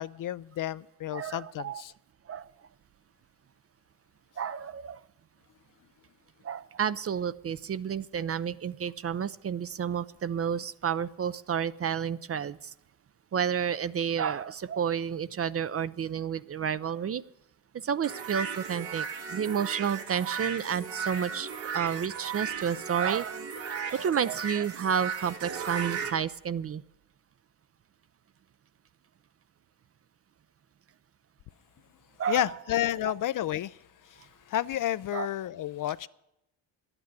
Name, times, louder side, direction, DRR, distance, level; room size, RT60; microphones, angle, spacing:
voice 1, 0.0-1.9 32.3-33.8 34.1-36.1, left 12 dB, 45° left, 0.4 m, -31 dB
voice 2, 1.1-1.8 2.3-2.5 4.4-5.0 6.4-12.7 13.3-17.2 17.7-26.8 32.2-32.5 33.0-33.1 35.1-35.3, right 8 dB, 35° right, 0.4 m, -31 dB
sound 1, 18.0-26.1, right 6 dB, 80° right, 2.3 m, -36 dB
11.5 x 8.9 x 9.4 m
supercardioid pair, 70°, 45 cm